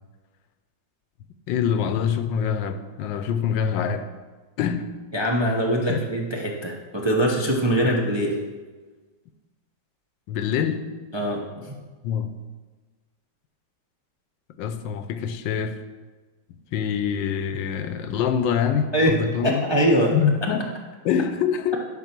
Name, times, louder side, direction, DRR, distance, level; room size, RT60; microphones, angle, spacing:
voice 1, 1.5-4.1 4.6-4.9 5.9-6.0 7.8-8.0 10.3-10.9 12.0-12.4 14.6-15.8 16.7-19.6 20.1-20.7 21.0-21.8, left 7 dB, 80° left, 10 dB, 1.4 m, -25 dB
voice 2, 5.1-8.3 11.1-11.7 18.9-19.1 19.4-20.1, equal, 20° right, -1 dB, 0.7 m, -22 dB
11.0 x 5.7 x 5.9 m, 1.4 s
omnidirectional pair, 2.0 m